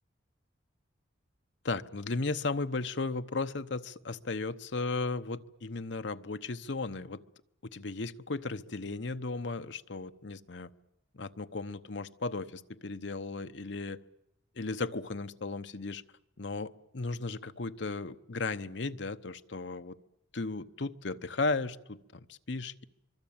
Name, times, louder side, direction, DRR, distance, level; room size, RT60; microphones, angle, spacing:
voice 1, 1.6-7.2 7.7-10.7 11.1-14.0 14.6-16.0 16.4-20.0 20.3-22.8, left 3 dB, 65° left, 10 dB, 0.9 m, -35 dB
24.0 x 23.5 x 8.8 m, 0.87 s
head